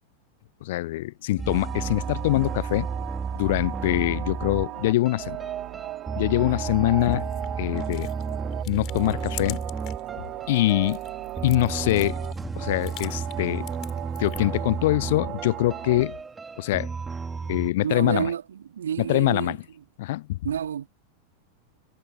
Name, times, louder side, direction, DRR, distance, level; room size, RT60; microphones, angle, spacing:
voice 1, 0.6-2.9 3.4-5.4 6.2-7.3 7.6-8.1 8.7-9.6 10.5-11.0 11.4-12.2 12.5-13.7 14.2-16.2 16.6-16.9 17.5-18.3 19.0-19.6 20.0-20.4, left 17 dB, 55° left, 0.6 m, -24 dB
sound 1, 1.4-17.7, right 4 dB, 15° right, 4.5 m, -33 dB
sound 2, 1.5-16.0, right 17 dB, 35° right, 5.6 m, -37 dB
sound 3, 7.0-10.1 10.4-14.6, left 18 dB, 40° left, 7.6 m, -44 dB
voice 2, 17.8-19.6 20.4-20.9, right 9 dB, 65° right, 4.2 m, -29 dB
figure-of-eight pair, 90°, 0 cm